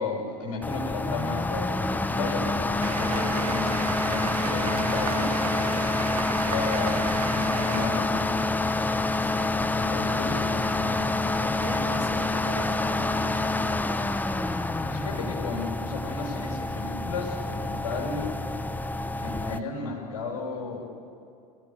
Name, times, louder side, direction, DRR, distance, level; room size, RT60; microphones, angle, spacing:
voice 1, 0.0-6.2 6.5-8.5 9.7-11.1 11.4-11.9 14.9-18.3 19.2-20.8, left 4 dB, 65° left, 0 dB, 6.2 m, -34 dB
sound 1, 0.6-19.6, left 2 dB, 10° left, 1.0 m, -27 dB
sound 2, 2.8-7.9, right 7 dB, 75° right, 0.7 m, -34 dB
voice 2, 9.2-9.6 9.9-10.2 11.6-14.0, right 4 dB, 55° right, 1 dB, 3.7 m, -41 dB
26.5 x 17.0 x 8.6 m, 2.5 s
figure-of-eight pair, 70°, 19 cm